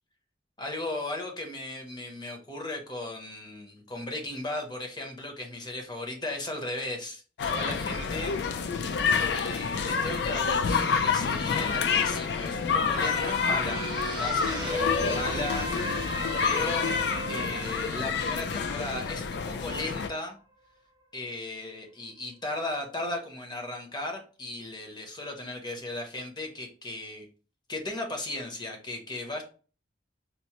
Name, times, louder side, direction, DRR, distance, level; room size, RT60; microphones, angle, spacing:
voice 1, 0.6-8.3 9.1-13.8 14.1-16.9 17.3-20.4 21.1-27.3 27.7-29.4, left 2 dB, 25° left, 2 dB, 0.7 m, -36 dB
sound 1, 7.4-20.1, left 6 dB, 65° left, 0.3 m, -28 dB
sound 2, 12.7-19.3 19.8-19.9, right 1 dB, 25° right, 0.6 m, -36 dB
4.3 x 2.1 x 2.9 m, 0.37 s
head